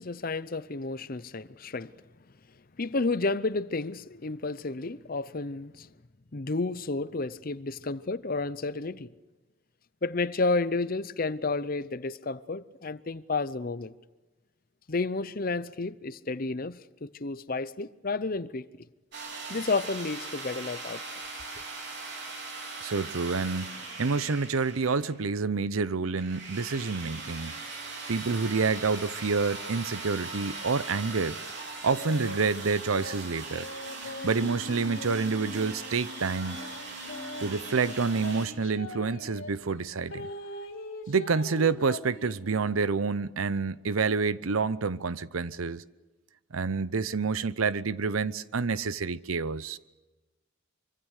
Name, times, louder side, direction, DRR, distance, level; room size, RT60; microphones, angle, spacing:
voice 1, 0.0-1.9 2.8-5.9 6.3-9.1 10.0-13.9 14.9-18.7 19.5-21.0, left 3 dB, 45° left, 0.7 m, -31 dB
sound 1, 19.1-25.3 26.2-38.5, right 3 dB, 55° right, 4.0 m, -40 dB
voice 2, 22.8-23.7 24.0-27.5 28.1-31.4 31.8-33.7 34.0-36.6 37.4-40.3 41.1-45.8 46.5-49.8, right 4 dB, 85° right, 0.7 m, -28 dB
sound 2, 31.8-32.4 32.9-35.8 36.4-39.5 40.1-42.8, left 1 dB, 75° left, 2.9 m, -42 dB
25.0 x 24.5 x 6.5 m
head